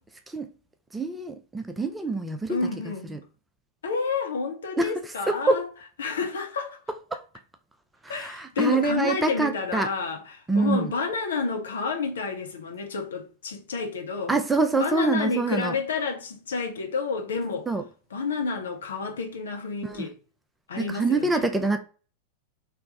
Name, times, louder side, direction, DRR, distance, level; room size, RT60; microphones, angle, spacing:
voice 1, 0.9-2.6 3.1-3.2 4.8-4.9 5.3-5.6 7.1-7.2 8.0-9.9 10.5-10.9 14.3-15.8 17.7-17.8 19.8-20.1 20.8-21.8, right 3 dB, 10° right, 0.5 m, -25 dB
voice 2, 2.5-3.2 3.8-5.7 6.0-6.8 8.1-14.3 14.7-17.7 18.1-20.1 20.7-21.5, left 4 dB, 65° left, 1.0 m, -30 dB
3.4 x 3.1 x 3.9 m
figure-of-eight pair, 90°, 0 cm